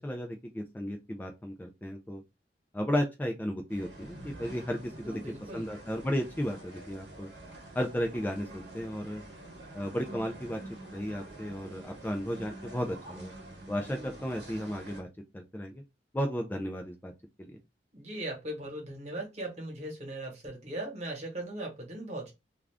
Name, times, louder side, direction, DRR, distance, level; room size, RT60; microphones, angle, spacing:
voice 1, 0.0-2.2 2.7-7.3 7.8-9.2 9.7-10.6 10.9-13.3 13.7-15.1 15.3-15.8 16.1-17.1 17.4-17.6, equal, 10° left, 3 dB, 0.3 m, -34 dB
sound 1, 3.7-15.0, right 1 dB, 75° right, 0.9 m, -47 dB
voice 2, 5.0-5.7 17.9-22.3, right 1 dB, 40° right, 1 dB, 1.1 m, -39 dB
2.4 x 2.3 x 3.3 m, 0.23 s
head